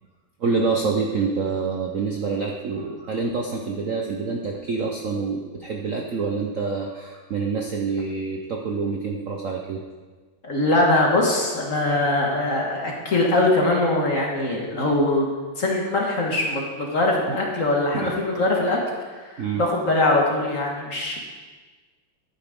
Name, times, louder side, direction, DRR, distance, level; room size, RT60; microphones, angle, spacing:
voice 1, 0.4-9.8 17.3-17.4 17.9-18.2 19.4-19.6, right 4 dB, 60° right, 1 dB, 0.9 m, -27 dB
voice 2, 10.4-15.3 15.6-18.8 19.2-21.2, left 2 dB, 40° left, -1 dB, 1.7 m, -22 dB
12.5 x 9.1 x 3.7 m, 1.4 s
omnidirectional pair, 2.3 m